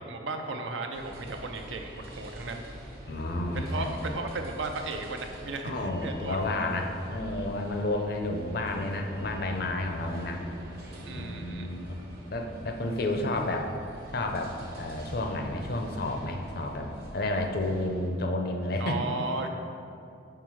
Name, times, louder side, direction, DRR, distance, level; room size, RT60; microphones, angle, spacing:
voice 1, 0.0-2.7 3.5-6.7 11.0-11.7 18.8-19.5, right 3 dB, 75° right, 4 dB, 0.6 m, -35 dB
sound 1, 0.9-18.1, equal, 50° right, 1.0 m, -45 dB
voice 2, 3.1-4.1 5.6-10.4 11.1-12.0 12.3-13.7 14.1-19.0, left 2 dB, 50° left, 3 dB, 0.6 m, -31 dB
5.7 x 4.3 x 4.7 m, 2.5 s
head